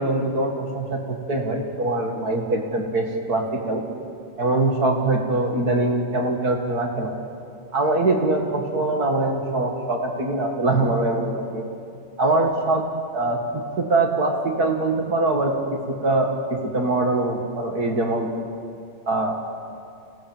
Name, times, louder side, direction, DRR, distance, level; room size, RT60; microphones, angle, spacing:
voice 1, 0.0-3.8 4.4-7.2 7.7-11.7 12.2-12.8 13.1-18.3 19.1-19.4, right 2 dB, 35° right, 2 dB, 1.9 m, -23 dB
26.5 x 17.0 x 7.3 m, 2.4 s
omnidirectional pair, 4.0 m